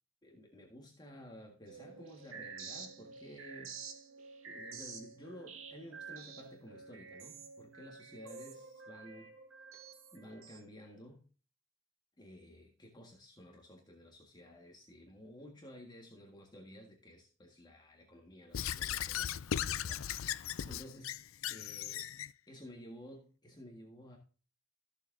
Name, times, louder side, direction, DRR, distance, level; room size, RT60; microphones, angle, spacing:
voice 1, 0.2-3.8 4.4-9.3 9.7-11.2 12.2-21.2 21.5-22.1 22.5-24.2, equal, 20° left, 0 dB, 1.7 m, -53 dB
sound 1, 1.7-10.6, right 5 dB, 85° right, 2.1 m, -49 dB
Squeak / Writing, 18.5-22.3, left 9 dB, 90° left, 0.5 m, -37 dB
14.5 x 6.8 x 2.7 m, 0.37 s
head